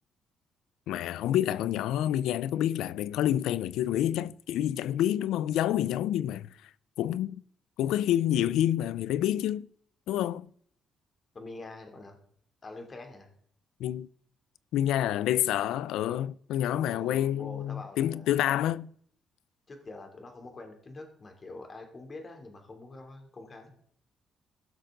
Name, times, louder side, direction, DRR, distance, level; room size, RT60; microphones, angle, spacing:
voice 1, 0.9-6.5 7.0-7.4 7.8-9.7 10.1-10.5 13.8-14.1 14.7-18.9, left 12 dB, 90° left, 0.4 m, -28 dB
voice 2, 11.3-12.2 12.6-13.3 16.7-18.6 19.7-23.8, left 2 dB, 35° left, 2.9 m, -45 dB
17.0 x 6.5 x 3.8 m
cardioid pair, 90°, 0 cm